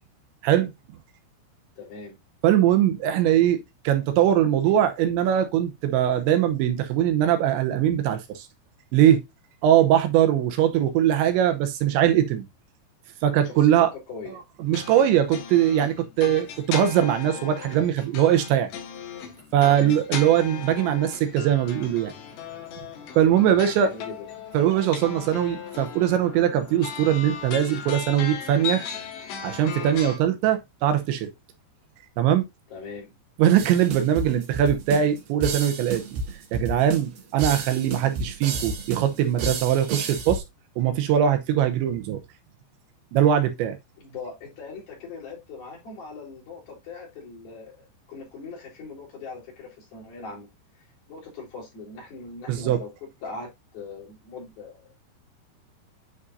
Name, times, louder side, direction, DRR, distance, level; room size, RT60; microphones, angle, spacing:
voice 1, 1.8-2.2 13.4-14.4 19.7-20.0 23.6-24.3 32.7-33.1 44.0-50.5 50.8-54.9, left 4 dB, 50° left, 5.5 m, -40 dB
voice 2, 2.4-3.6 3.8-8.5 8.9-9.2 9.6-12.5 13.2-13.9 14.6-18.7 19.5-22.1 23.2-23.9 24.5-29.0 29.4-31.3 32.2-32.4 33.4-36.0 36.5-40.4 40.8-42.2 43.1-43.8 52.5-52.8, right 10 dB, 80° right, 3.0 m, -21 dB
sound 1, 14.7-30.2, left 7 dB, 70° left, 3.6 m, -37 dB
sound 2, 33.6-40.4, right 3 dB, 60° right, 3.8 m, -31 dB
9.8 x 5.1 x 2.6 m
omnidirectional pair, 5.4 m